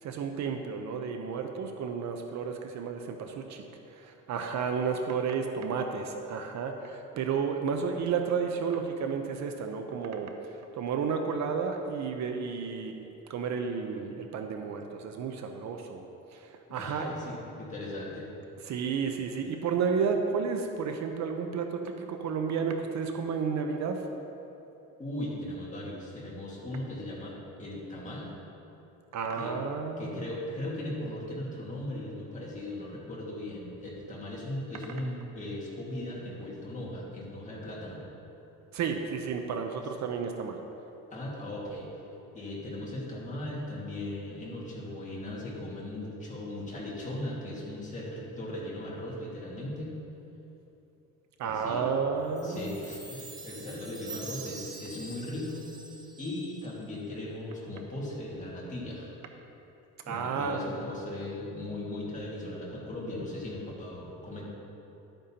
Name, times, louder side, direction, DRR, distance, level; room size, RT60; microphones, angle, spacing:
voice 1, 0.0-3.6 3.9-16.1 16.3-17.1 18.7-24.0 29.1-30.3 38.7-40.6 51.4-52.8 60.1-60.6, right 6 dB, 55° right, 5 dB, 0.7 m, -32 dB
voice 2, 16.7-18.3 25.0-28.4 29.3-29.5 30.0-38.0 41.1-41.9 42.3-49.9 51.4-52.0 52.4-55.7 56.2-59.2 60.1-64.4, left 1 dB, 20° left, -5 dB, 1.9 m, -38 dB
Chime, 52.4-56.8, right 3 dB, 10° right, 0.7 m, -45 dB
12.0 x 8.9 x 2.8 m, 2.9 s
cardioid pair, 155°, 33 cm